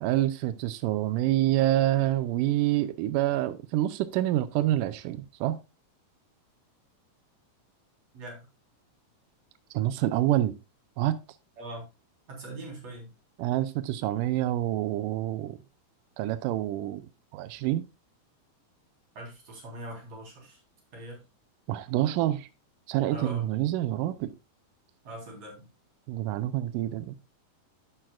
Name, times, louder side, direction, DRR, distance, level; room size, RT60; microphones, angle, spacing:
voice 1, 0.0-5.6 9.7-10.5 11.0-11.2 13.4-15.6 16.2-17.1 17.3-17.9 21.7-22.5 22.9-24.3 26.1-27.1, right 14 dB, 85° right, 1.9 m, -27 dB
voice 2, 8.1-8.5 11.6-11.9 12.3-13.1 19.1-20.6 20.9-21.2 23.1-23.4 25.0-25.7, right 1 dB, 45° right, 4.7 m, -41 dB
10.5 x 8.9 x 2.4 m
omnidirectional pair, 4.4 m